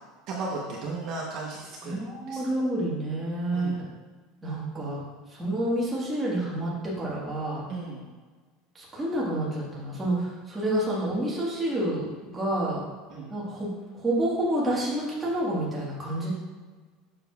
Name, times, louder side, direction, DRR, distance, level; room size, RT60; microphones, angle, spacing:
voice 1, 0.3-2.0 2.3-2.4 3.5-3.8 7.7-8.0 13.1-13.3, right 3 dB, 40° right, -3 dB, 0.8 m, -35 dB
voice 2, 1.8-3.8 4.4-5.0 5.3-7.6 8.7-12.8 13.3-13.7 14.0-16.3, right 1 dB, 10° right, -6 dB, 1.4 m, -29 dB
7.0 x 6.5 x 2.3 m, 1.4 s
cardioid pair, 175°, 0 cm